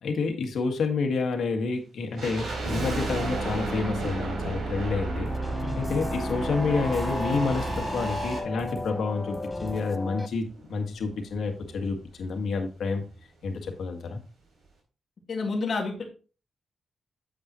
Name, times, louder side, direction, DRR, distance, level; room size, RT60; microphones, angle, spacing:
voice 1, 0.0-5.3 5.8-13.0 13.4-14.2, left 4 dB, 80° left, 4 dB, 1.8 m, -29 dB
sound 1, 2.2-8.4, right 2 dB, 35° right, 3.7 m, -33 dB
sound 2, 2.2-9.4 9.7-9.8 10.5-12.3 12.5-12.6 12.9-13.2 13.6-13.7, right 2 dB, 80° right, 3.7 m, -37 dB
sound 3, 5.3-10.3, left 2 dB, 10° left, 0.5 m, -34 dB
voice 2, 15.3-16.0, left 3 dB, 45° left, 2 dB, 2.0 m, -29 dB
8.8 x 7.6 x 3.0 m, 0.36 s
wide cardioid pair, 160°, 0 cm